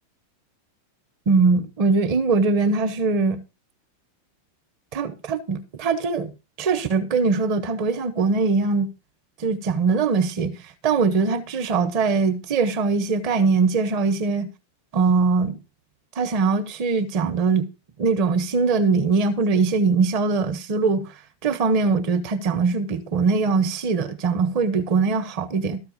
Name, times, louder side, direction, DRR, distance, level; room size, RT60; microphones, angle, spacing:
voice 1, 1.3-3.4 4.9-6.3 6.6-8.9 9.4-14.5 14.9-15.6 16.1-17.7 18.0-21.1 21.4-25.8, right 4 dB, 45° right, 1.5 m, -21 dB
13.5 x 4.6 x 6.8 m
figure-of-eight pair, 90°, 0 cm